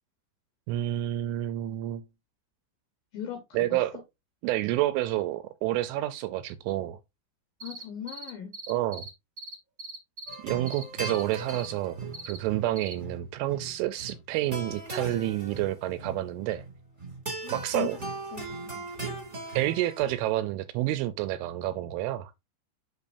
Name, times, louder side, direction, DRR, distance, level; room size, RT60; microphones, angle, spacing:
voice 1, 0.7-2.0 3.5-3.9 4.4-7.0 8.7-9.1 10.4-12.0 12.3-16.6 17.5-18.0 19.5-22.3, right 14 dB, 80° right, 2.9 m, -29 dB
voice 2, 3.1-3.6 7.6-8.5 17.4-17.9 18.3-18.8, left 10 dB, 75° left, 2.2 m, -38 dB
sound 1, 7.6-9.1 9.4-10.3 10.7-11.2 11.5-11.7 12.1-12.4 12.7-12.9, right 2 dB, 45° right, 1.0 m, -40 dB
sound 2, 10.3-20.3, right 3 dB, 15° right, 1.6 m, -39 dB
8.4 x 6.7 x 2.6 m
omnidirectional pair, 5.9 m